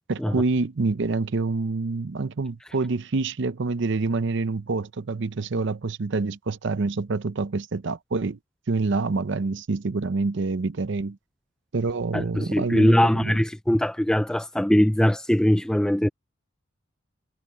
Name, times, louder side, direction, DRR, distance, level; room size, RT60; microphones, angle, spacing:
voice 1, 0.1-8.4 8.7-11.2 11.7-13.4, right 3 dB, 65° right, 0.6 m, -27 dB
voice 2, 12.1-16.1, left 1 dB, 5° left, 0.3 m, -21 dB
head